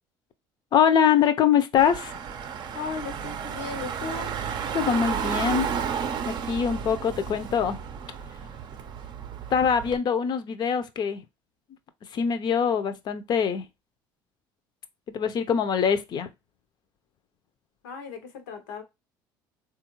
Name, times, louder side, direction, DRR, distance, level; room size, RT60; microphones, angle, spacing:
voice 1, 0.7-2.1 4.7-5.7 6.2-7.8 9.5-11.2 12.1-13.7 15.1-16.3, left 7 dB, 50° left, 0.5 m, -23 dB
Car / Engine, 1.8-10.0, right 7 dB, 50° right, 0.5 m, -32 dB
voice 2, 2.7-4.3 17.8-18.8, left 5 dB, 85° left, 0.8 m, -36 dB
3.4 x 2.4 x 3.0 m
supercardioid pair, 80°, 10 cm